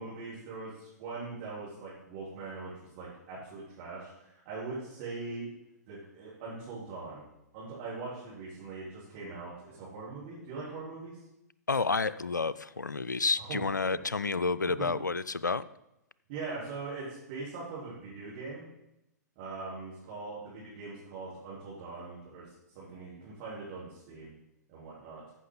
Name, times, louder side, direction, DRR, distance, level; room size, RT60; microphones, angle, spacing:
voice 1, 0.0-5.5 5.9-7.2 7.5-11.2 13.4-14.0 14.8-14.9 16.3-18.6 19.3-22.5 22.7-24.3 24.7-25.2, right 3 dB, 40° right, -8 dB, 3.4 m, -41 dB
voice 2, 11.7-15.6, left 4 dB, 90° left, 16 dB, 0.4 m, -30 dB
14.5 x 5.9 x 3.9 m, 0.87 s
figure-of-eight pair, 115°, 10 cm